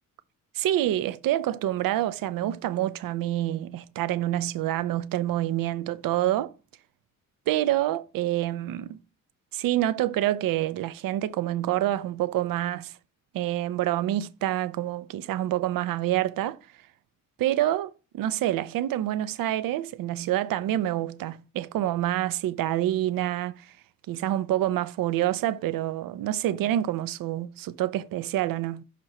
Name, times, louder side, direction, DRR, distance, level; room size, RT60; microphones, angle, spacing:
voice 1, 0.5-6.5 7.5-9.0 9.5-13.0 13.3-16.6 17.4-23.7 24.1-28.8, right 13 dB, 85° right, 0.5 m, -27 dB
6.0 x 2.9 x 5.4 m
wide cardioid pair, 155°, 33 cm